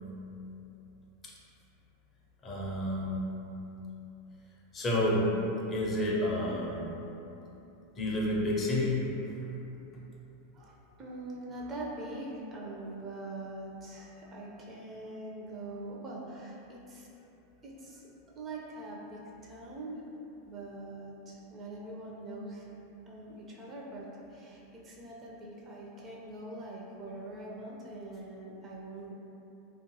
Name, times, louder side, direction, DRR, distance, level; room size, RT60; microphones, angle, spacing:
voice 1, 2.4-3.2 4.7-5.3 5.7-6.9 8.0-9.1 9.9-10.0, left 1 dB, 30° left, -4 dB, 0.5 m, -30 dB
voice 2, 10.5-17.1 17.6-18.0 18.3-20.0 20.5-22.7 23.1-29.1, right 2 dB, 30° right, -4 dB, 0.5 m, -43 dB
2.5 x 2.3 x 2.6 m, 2.9 s
hypercardioid pair, 90°, 0 cm